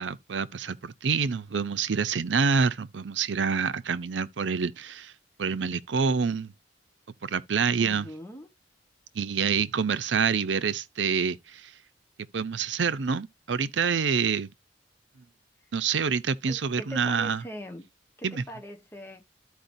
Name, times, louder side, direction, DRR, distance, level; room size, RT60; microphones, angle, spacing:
voice 1, 0.0-5.1 5.4-6.5 7.2-8.1 9.2-11.7 12.3-14.5 15.7-17.4 18.2-18.4, right 6 dB, 85° right, 0.6 m, -27 dB
voice 2, 7.8-8.5 16.4-17.9 18.2-19.3, equal, 15° left, 1.1 m, -42 dB
13.5 x 4.7 x 2.6 m
head